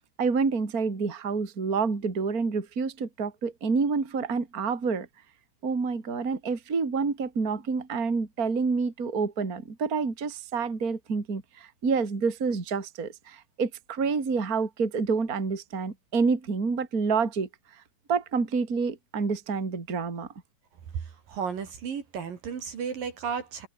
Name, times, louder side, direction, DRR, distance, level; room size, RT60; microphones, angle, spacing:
voice 1, 0.2-5.1 5.6-17.8 18.1-20.3, right 5 dB, 25° right, 3.1 m, -28 dB
voice 2, 21.3-23.7, right 6 dB, 55° right, 4.2 m, -33 dB
omnidirectional pair, 5.0 m